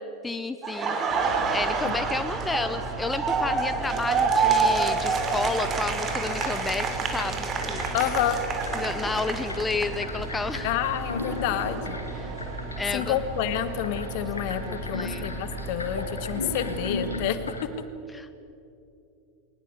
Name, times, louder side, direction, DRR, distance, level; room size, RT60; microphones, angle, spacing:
voice 1, 0.2-1.0 1.5-7.8 8.7-10.7 12.1-12.3 12.8-13.2 14.5-15.3 18.1-18.3, left 3 dB, 15° left, 11 dB, 0.9 m, -31 dB
Laughter, 0.6-10.5 10.8-12.8, right 5 dB, 30° right, 3.2 m, -28 dB
sound 1, 1.1-17.2, right 2 dB, 50° right, 5.3 m, -37 dB
sound 2, 6.1-17.6, left 3 dB, 85° left, 2.0 m, -38 dB
voice 2, 7.9-8.4 10.6-12.0 12.9-17.4, left 11 dB, 55° left, 11 dB, 1.6 m, -29 dB
21.5 x 19.5 x 8.3 m, 2.7 s
figure-of-eight pair, 85°, 0 cm